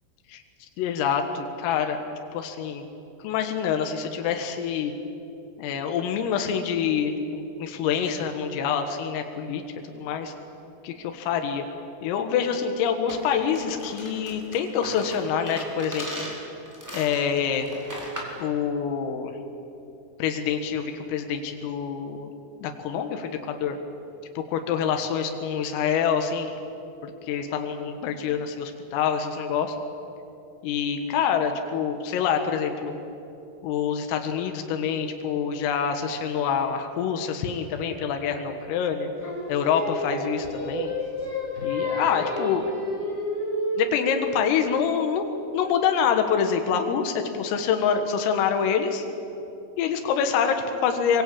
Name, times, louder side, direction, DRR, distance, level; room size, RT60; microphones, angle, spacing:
voice 1, 0.8-2.1 2.3-2.8 3.2-4.9 5.6-9.6 9.9-10.3 10.8-11.7 12.0-16.1 16.9-17.7 18.4-19.3 20.2-22.3 22.6-23.8 24.5-26.5 27.0-29.8 30.6-32.9 33.6-39.1 39.5-40.9 41.6-42.6 43.8-45.2 45.5-49.1 49.8-51.2, left 7 dB, 85° left, 5 dB, 4.2 m, -26 dB
sound 1, 13.1-18.4, equal, 5° right, 3.6 m, -39 dB
Singing, 39.2-44.4, left 1 dB, 20° left, 4.8 m, -30 dB
24.5 x 24.0 x 8.7 m, 2.8 s
omnidirectional pair, 5.8 m